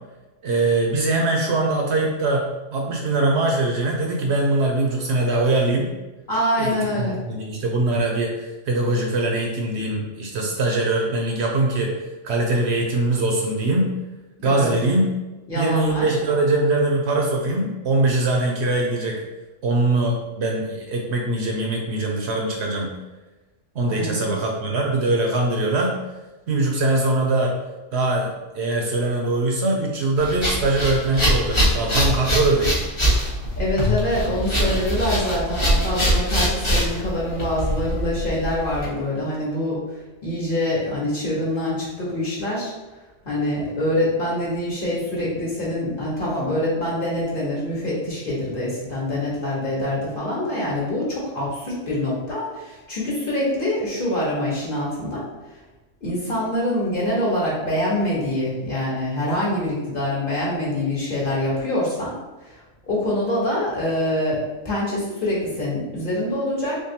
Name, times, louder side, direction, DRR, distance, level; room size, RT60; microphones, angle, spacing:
voice 1, 0.4-5.9 6.6-11.9 12.2-13.9 14.4-15.1 15.5-19.2 19.6-22.9 23.7-25.9 26.5-27.5 27.9-28.3 28.5-32.8, right 2 dB, 65° right, 0 dB, 0.8 m, -22 dB
voice 2, 6.3-7.2 14.4-14.7 15.5-16.2 23.9-24.4 33.6-39.8 40.2-42.7 43.2-55.2 56.0-62.1 62.4-62.6 62.8-64.4 64.6-66.8, left 1 dB, 45° left, -6 dB, 1.3 m, -25 dB
sound 1, 30.2-38.9, equal, 25° left, 0.9 m, -23 dB
3.6 x 3.2 x 2.8 m, 1.1 s
omnidirectional pair, 1.3 m